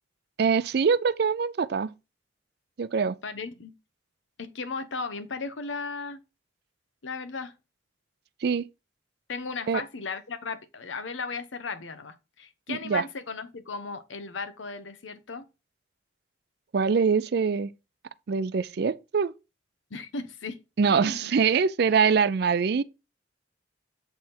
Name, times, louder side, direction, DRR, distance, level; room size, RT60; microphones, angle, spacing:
voice 1, 0.4-1.9 2.8-3.2 8.4-8.7 9.7-9.8 12.7-13.0 16.7-17.7 18.3-19.3 20.8-22.8, right 5 dB, 60° right, 0.4 m, -24 dB
voice 2, 3.2-3.7 4.4-6.2 7.0-7.5 9.3-15.4 19.9-20.6 20.9-21.3, left 4 dB, 85° left, 0.9 m, -36 dB
7.8 x 3.5 x 4.3 m
head